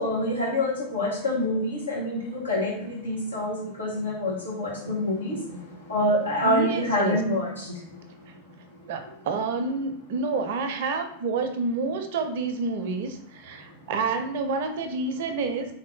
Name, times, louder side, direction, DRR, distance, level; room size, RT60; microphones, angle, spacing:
voice 1, 0.0-5.4 5.9-7.5, left 1 dB, 75° left, -4 dB, 1.5 m, -26 dB
voice 2, 6.4-7.2 8.9-15.7, right 3 dB, 50° right, 7 dB, 0.5 m, -28 dB
3.5 x 2.7 x 3.4 m, 0.74 s
figure-of-eight pair, 90°, 0 cm